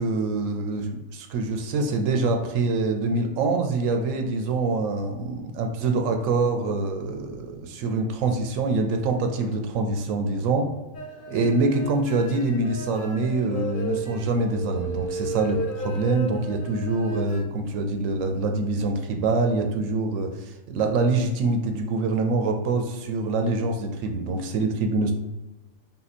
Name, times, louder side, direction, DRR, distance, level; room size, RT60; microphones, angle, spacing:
voice 1, 0.0-10.7 11.3-25.1, right 3 dB, 80° right, 4 dB, 1.0 m, -25 dB
sound 1, 10.9-17.4, right 1 dB, 55° left, 0.6 m, -34 dB
3.8 x 2.8 x 4.1 m, 1.1 s
omnidirectional pair, 1.4 m